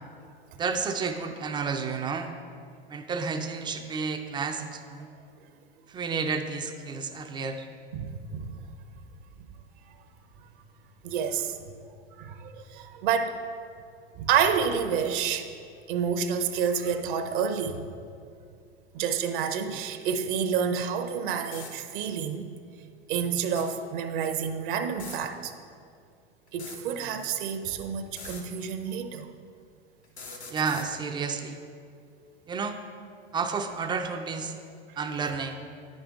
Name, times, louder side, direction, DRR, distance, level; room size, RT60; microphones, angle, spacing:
voice 1, 0.6-2.3 2.9-5.1 5.9-7.7 19.7-19.8 30.5-31.6 32.5-32.8 33.3-34.5 35.0-35.6, right 5 dB, 15° right, 6 dB, 0.3 m, -31 dB
voice 2, 7.9-8.6 11.0-11.6 12.2-13.4 14.2-15.5 15.9-17.8 18.9-22.5 23.1-25.5 26.5-29.3, right 7 dB, 50° right, 8 dB, 0.7 m, -29 dB
sound 1, 21.5-21.7 23.4-23.7 24.9-25.2 26.5-26.8 28.1-28.4 30.0-30.9, left 4 dB, 90° left, 1.0 m, -42 dB
9.9 x 5.3 x 3.5 m, 2.3 s
figure-of-eight pair, 85°, 32 cm